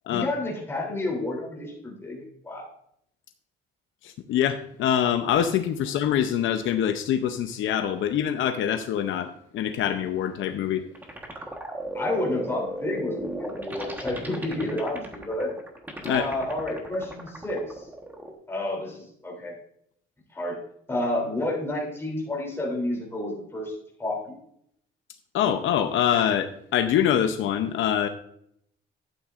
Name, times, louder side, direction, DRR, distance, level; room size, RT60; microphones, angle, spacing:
voice 1, 0.1-2.7 11.9-15.5 16.1-17.9 18.5-19.5 20.3-20.6 20.9-23.7 24.0-24.2, left 1 dB, 10° left, -3 dB, 3.1 m, -30 dB
voice 2, 4.0-10.8 16.0-16.2 25.3-28.1, left 9 dB, 70° left, 8 dB, 0.7 m, -25 dB
sound 1, 10.3-18.3, right 1 dB, 10° right, 1.3 m, -37 dB
11.5 x 9.0 x 2.5 m, 0.71 s
cardioid pair, 170°, 21 cm